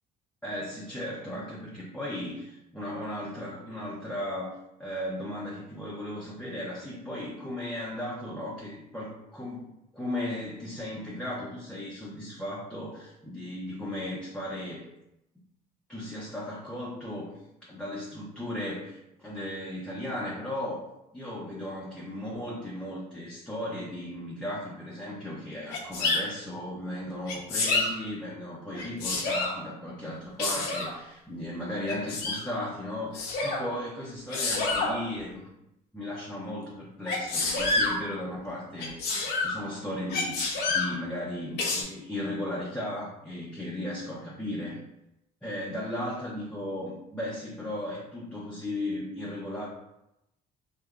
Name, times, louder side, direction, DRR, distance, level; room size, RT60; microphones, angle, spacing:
voice 1, 0.4-14.8 15.9-17.3 17.7-20.8 21.1-35.4 35.9-39.1 39.4-40.4 40.7-44.8 45.4-49.7, left 1 dB, 5° left, -7 dB, 0.7 m, -36 dB
Sneeze, 25.7-26.2 27.3-27.9 28.7-29.6 30.4-30.9 31.9-32.4 33.1-33.6 34.3-34.9 37.1-37.9 38.8-39.5 40.1-40.9 41.6-41.8, left 3 dB, 75° left, 0.9 m, -28 dB
3.3 x 2.7 x 2.4 m, 0.87 s
cardioid pair, 110°, 17 cm